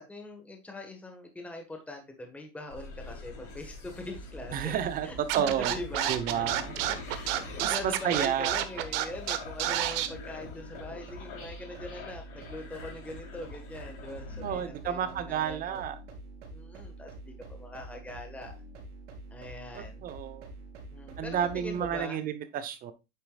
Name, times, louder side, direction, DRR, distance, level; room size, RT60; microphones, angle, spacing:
voice 1, 0.0-6.5 6.9-15.8 16.5-18.6 19.3-20.0 20.9-22.2, left 2 dB, 5° left, 4 dB, 1.4 m, -42 dB
sound 1, 2.7-14.7, left 4 dB, 40° left, 3.4 m, -45 dB
sound 2, 4.0-22.0, right 2 dB, 85° right, 3.2 m, -46 dB
voice 2, 4.5-5.8 6.1-6.7 7.6-8.5 14.4-16.0 19.8-20.5 21.2-22.9, right 9 dB, 25° right, 11 dB, 0.9 m, -31 dB
Scratching (performance technique), 5.3-10.1, right 13 dB, 55° right, 1.1 m, -29 dB
9.0 x 6.8 x 2.4 m, 0.25 s
supercardioid pair, 140°, 35 cm